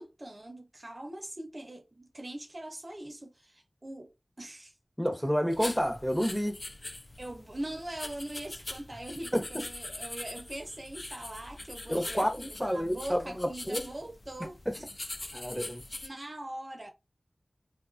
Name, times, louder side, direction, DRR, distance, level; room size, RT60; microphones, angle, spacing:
voice 1, 0.0-4.1 4.4-4.7 7.2-14.8 15.9-16.9, right 1 dB, 40° right, 0.5 m, -42 dB
voice 2, 5.0-6.6 9.3-9.5 11.9-13.8 15.3-15.8, equal, 5° left, 0.7 m, -29 dB
sound 1, 5.5-16.1, left 2 dB, 40° left, 0.3 m, -42 dB
2.5 x 2.3 x 2.4 m
wide cardioid pair, 50°, 0 cm